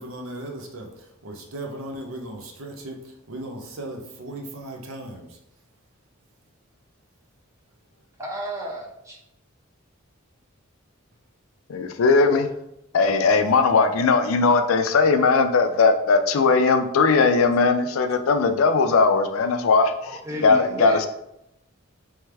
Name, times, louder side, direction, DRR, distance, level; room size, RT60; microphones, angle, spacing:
voice 1, 0.0-5.4, right 1 dB, 80° right, 1 dB, 0.7 m, -37 dB
voice 2, 8.2-9.2 20.0-21.0, equal, 15° right, -2 dB, 0.7 m, -33 dB
voice 3, 11.7-12.5 12.9-19.9 20.4-21.1, left 4 dB, 85° left, 8 dB, 0.4 m, -19 dB
3.5 x 3.2 x 3.3 m, 0.83 s
head